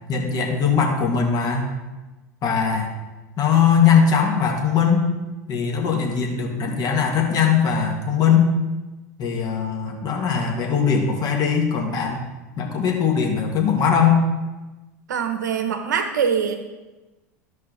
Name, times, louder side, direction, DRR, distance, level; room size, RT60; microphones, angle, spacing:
voice 1, 0.1-1.7 2.4-2.9 3.4-5.1 5.5-8.5 9.2-12.3 12.6-14.2, left 6 dB, 40° left, 1 dB, 1.9 m, -20 dB
voice 2, 15.1-16.6, right 7 dB, 80° right, 6 dB, 1.2 m, -23 dB
13.0 x 5.4 x 4.1 m, 1.1 s
hypercardioid pair, 85°, 10 cm